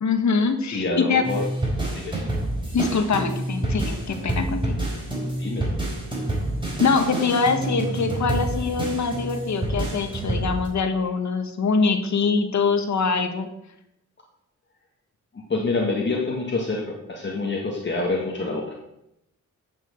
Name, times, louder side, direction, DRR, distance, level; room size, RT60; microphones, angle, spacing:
voice 1, 0.0-1.3 2.7-4.8 6.8-13.5, left 4 dB, 65° left, 6 dB, 1.4 m, -23 dB
voice 2, 0.7-1.5 1.9-2.3 5.4-5.7 15.3-18.7, left 3 dB, 40° left, -1 dB, 1.6 m, -27 dB
sound 1, 1.2-10.7, right 1 dB, 15° right, 3.9 m, -28 dB
8.8 x 6.1 x 7.9 m, 0.84 s
wide cardioid pair, 120°, 30 cm